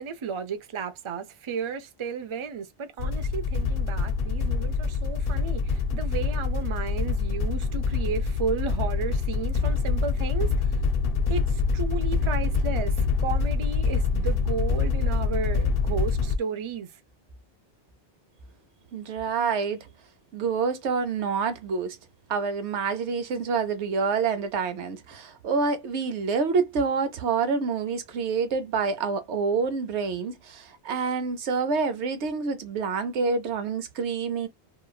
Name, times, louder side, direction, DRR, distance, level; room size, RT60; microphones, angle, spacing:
voice 1, 0.0-10.8 11.3-17.0, right 6 dB, 40° right, 0.4 m, -33 dB
sound 1, 3.0-16.4, left 5 dB, 60° left, 0.7 m, -25 dB
voice 2, 18.9-19.9 20.3-22.0 22.3-34.5, right 5 dB, 90° right, 1.0 m, -27 dB
3.0 x 2.4 x 2.3 m
omnidirectional pair, 1.1 m